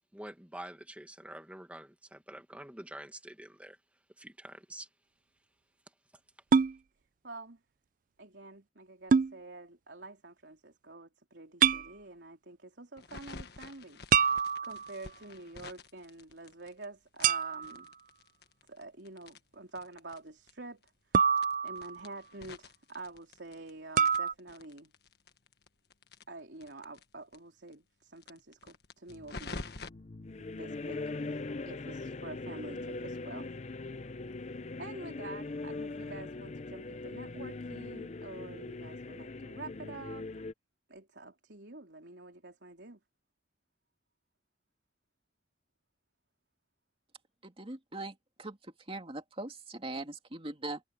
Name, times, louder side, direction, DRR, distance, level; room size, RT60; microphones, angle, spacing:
voice 1, 0.1-3.8 4.2-4.9, right 1 dB, 10° right, 1.8 m, -47 dB
sound 1, 6.5-6.7 9.1-9.3 11.6-11.9 14.1-15.0 17.2-17.8 21.1-22.1 24.0-24.3, right 6 dB, 50° right, 0.4 m, -26 dB
voice 2, 7.2-7.6 8.2-14.0 14.6-17.9 18.7-20.8 21.1-21.3 21.6-24.9 26.3-29.7 30.4-33.5 34.8-40.5 40.9-43.0, right 2 dB, 85° right, 3.5 m, -48 dB
sound 2, 13.0-16.8 17.2-20.2 20.5-20.6 20.8-20.9 21.3-23.7 24.0-27.0 27.3-27.4 27.7-27.8 28.2-29.9, left 3 dB, 65° left, 1.6 m, -47 dB
sound 3, 29.1-40.5, left 3 dB, 40° left, 0.6 m, -41 dB
voice 3, 47.4-50.8, right 2 dB, 35° right, 2.5 m, -41 dB
head